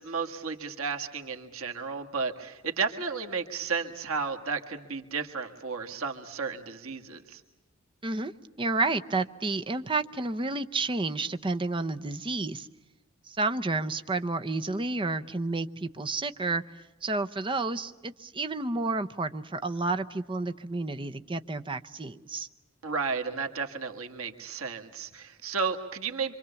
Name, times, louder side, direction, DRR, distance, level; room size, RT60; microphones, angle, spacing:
voice 1, 0.0-7.4 22.8-26.3, right 5 dB, 85° right, 4 dB, 1.8 m, -33 dB
voice 2, 8.6-12.7 13.3-16.6 17.0-22.5, right 3 dB, 25° right, 9 dB, 0.8 m, -30 dB
26.5 x 25.5 x 7.0 m, 1.1 s
head